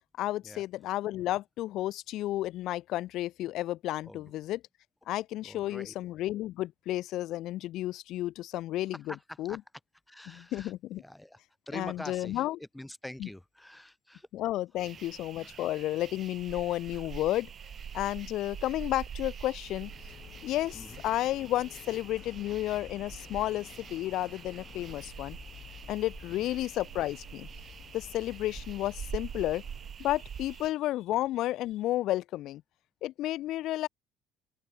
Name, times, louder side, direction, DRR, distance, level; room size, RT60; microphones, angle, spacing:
voice 1, 0.2-4.6 5.1-9.0 9.4-9.6 10.3-11.0 11.7-12.6 13.2-13.3 14.3-17.5 17.9-19.9 20.4-25.4 25.9-27.5 27.9-29.6 30.0-32.6 33.0-33.9, left 15 dB, 65° left, 0.6 m, -32 dB
voice 2, 5.4-5.9 8.9-9.6 10.1-11.4 11.7-14.3 15.4-15.6 16.9-17.0 20.7-21.0 26.3-26.5, left 1 dB, 5° left, 0.7 m, -45 dB
sound 1, 14.8-30.7, right 8 dB, 40° right, 0.6 m, -45 dB
Printer, 19.6-29.9, left 10 dB, 50° left, 2.7 m, -51 dB
open air
cardioid pair, 115°, 0 cm